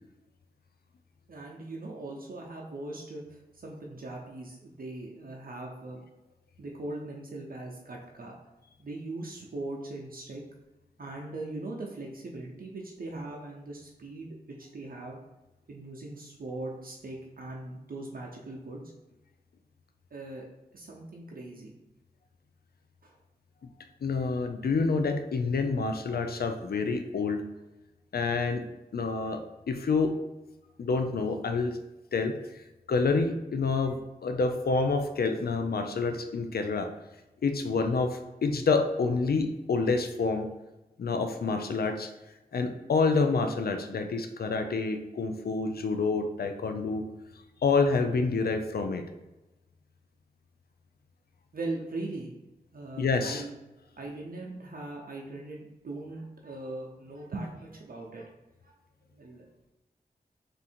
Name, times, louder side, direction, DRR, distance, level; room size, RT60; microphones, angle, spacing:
voice 1, 1.3-6.0 6.6-8.4 8.8-10.4 11.0-15.2 15.7-18.8 20.1-20.5 20.7-21.8 23.0-23.2 51.5-52.3 52.7-53.5 54.0-58.3 58.6-58.7 59.1-59.5, right 2 dB, 65° right, -1 dB, 0.6 m, -40 dB
voice 2, 24.0-27.5 28.1-28.7 28.9-30.2 30.8-31.8 32.1-32.6 32.9-36.9 37.4-40.5 41.0-42.1 42.5-47.1 47.6-49.1 53.0-53.4, left 4 dB, 75° left, 7 dB, 0.4 m, -28 dB
3.5 x 2.6 x 4.3 m, 1.0 s
cardioid pair, 40°, 16 cm